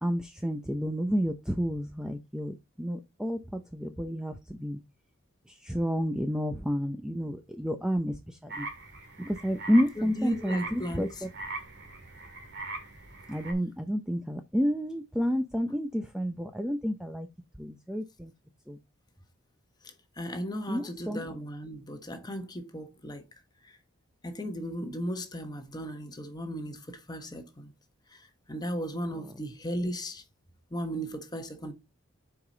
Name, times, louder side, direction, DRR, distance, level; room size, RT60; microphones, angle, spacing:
voice 1, 0.0-4.8 5.5-8.7 9.2-11.3 13.3-17.3 17.6-18.3 18.7-18.8 20.7-21.2, equal, 5° right, 0.5 m, -30 dB
sound 1, 8.5-13.5, right 2 dB, 55° right, 2.0 m, -41 dB
voice 2, 10.0-11.2 19.8-23.3 23.6-23.8 24.2-27.7 28.1-30.2 30.7-31.7, equal, 20° left, 1.1 m, -36 dB
7.0 x 4.9 x 3.9 m
head